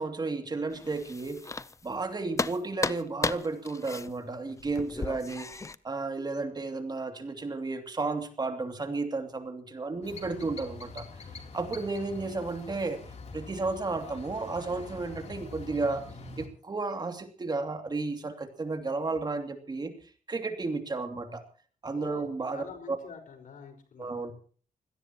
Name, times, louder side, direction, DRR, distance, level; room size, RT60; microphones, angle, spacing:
voice 1, 0.0-1.5 1.8-11.1 11.5-13.0 13.3-16.0 16.4-19.9 20.3-21.4 21.8-23.0 24.0-24.3, right 3 dB, 30° right, 6 dB, 2.7 m, -33 dB
sound 1, 0.7-2.0 2.3-5.7, left 3 dB, 20° left, 0.7 m, -34 dB
sound 2, 10.0-16.5, left 4 dB, 50° left, 3.4 m, -45 dB
voice 2, 21.9-24.1, left 6 dB, 75° left, 7 dB, 5.2 m, -46 dB
24.5 x 17.5 x 3.0 m, 0.41 s
wide cardioid pair, 120°, 14 cm